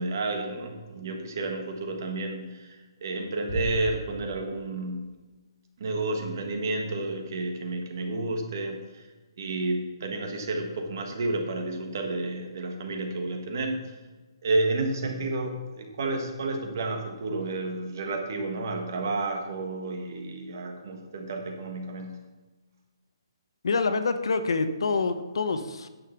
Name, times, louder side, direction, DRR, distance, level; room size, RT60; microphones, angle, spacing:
voice 1, 0.0-5.1 5.8-9.1 9.4-13.8 14.4-22.2, right 2 dB, 40° right, 4 dB, 1.5 m, -31 dB
Bass drum, 3.5-4.9, right 1 dB, 25° left, 2.5 m, -35 dB
voice 2, 23.6-25.9, left 4 dB, 65° left, 10 dB, 0.9 m, -26 dB
9.7 x 6.9 x 5.8 m, 1.2 s
hypercardioid pair, 180°, 3 cm